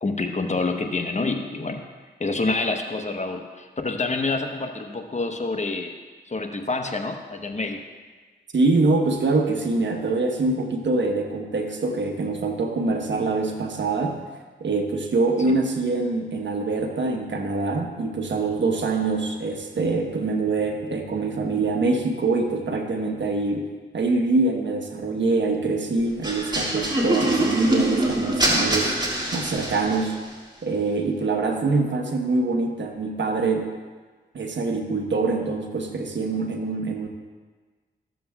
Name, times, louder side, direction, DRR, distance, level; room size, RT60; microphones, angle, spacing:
voice 1, 0.0-1.9 2.2-5.9 6.3-7.8 15.5-15.6, left 3 dB, 35° left, 5 dB, 1.0 m, -27 dB
voice 2, 8.5-14.2 14.6-23.7 23.9-29.0 29.3-30.2 30.6-33.7 34.3-37.1, right 3 dB, 65° right, 3 dB, 1.2 m, -24 dB
sound 1, 26.2-30.2, right 1 dB, 20° right, 2.5 m, -24 dB
14.0 x 7.5 x 2.3 m, 1.4 s
cardioid pair, 45°, 20 cm